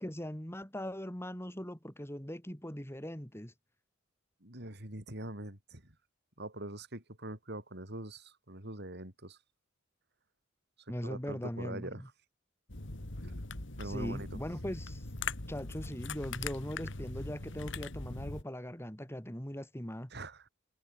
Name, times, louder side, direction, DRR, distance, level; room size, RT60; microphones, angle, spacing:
voice 1, 0.0-3.5 10.9-12.0 13.8-15.0 15.5-20.1, equal, 10° left, 3.3 m, -40 dB
voice 2, 4.4-5.9 6.4-9.4 11.0-12.0 13.8-14.3 20.1-20.5, right 1 dB, 55° right, 6.2 m, -43 dB
sound 1, 12.7-18.4, left 3 dB, 65° left, 2.5 m, -41 dB
head